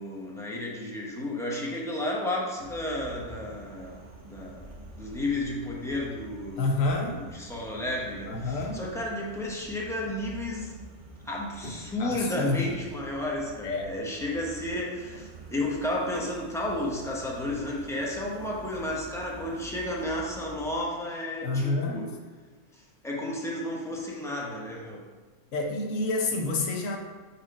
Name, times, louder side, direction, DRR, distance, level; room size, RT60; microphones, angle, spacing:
voice 1, 0.0-4.7 5.0-6.7 7.1-10.7 11.3-22.1 23.0-25.0, left 1 dB, 5° left, -4 dB, 0.7 m, -32 dB
sound 1, 2.6-20.7, right 2 dB, 50° right, 0.4 m, -47 dB
voice 2, 6.6-7.2 8.3-8.8 12.0-12.7 13.6-13.9 21.4-22.2 25.5-27.0, left 3 dB, 65° left, 2 dB, 1.2 m, -28 dB
sound 2, 8.6-9.0 11.6-12.1 12.5-12.6, right 1 dB, 45° left, 1.1 m, -45 dB
4.7 x 4.2 x 5.1 m, 1.4 s
omnidirectional pair, 1.6 m